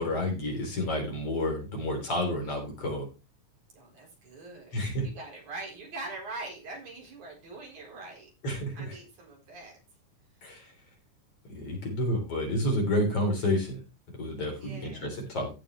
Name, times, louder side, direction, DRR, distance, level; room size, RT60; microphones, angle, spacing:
voice 1, 0.0-3.1 4.7-5.1 8.4-8.8 10.4-10.7 11.5-13.8 14.1-15.5, left 1 dB, 45° left, 1 dB, 4.5 m, -30 dB
voice 2, 3.7-8.3 8.7-9.8 10.3-10.5 14.6-15.1, right 2 dB, 65° right, -1 dB, 5.7 m, -43 dB
16.0 x 6.6 x 3.3 m, 0.29 s
omnidirectional pair, 3.7 m